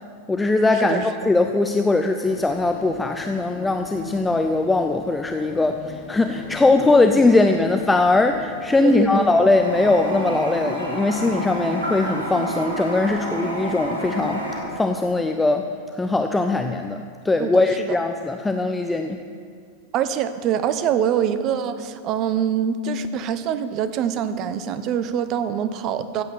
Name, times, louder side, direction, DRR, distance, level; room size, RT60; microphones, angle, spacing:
voice 1, 0.3-14.4 14.8-19.2, left 3 dB, 10° left, 6 dB, 0.5 m, -20 dB
sound 1, 2.2-14.8, left 4 dB, 40° left, 1.6 m, -39 dB
voice 2, 8.8-9.3 17.4-18.0 19.9-26.2, right 8 dB, 35° right, 12 dB, 0.7 m, -24 dB
Toilet flush, 9.6-14.6, right 1 dB, 80° right, 3.2 m, -29 dB
14.5 x 8.2 x 6.2 m, 2.2 s
figure-of-eight pair, 90°, 0 cm